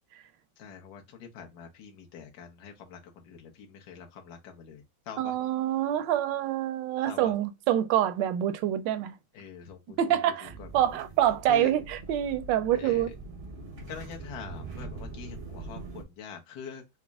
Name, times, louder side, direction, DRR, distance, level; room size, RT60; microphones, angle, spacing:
voice 1, 0.6-5.3 7.1-7.3 9.3-10.7 11.5-11.7 12.7-13.1 13.9-16.8, left 7 dB, 60° left, 1.2 m, -44 dB
voice 2, 5.2-9.1 10.0-13.1, right 11 dB, 75° right, 1.1 m, -26 dB
sound 1, 10.4-16.0, right 3 dB, 55° right, 0.6 m, -43 dB
4.1 x 2.1 x 3.4 m
omnidirectional pair, 2.2 m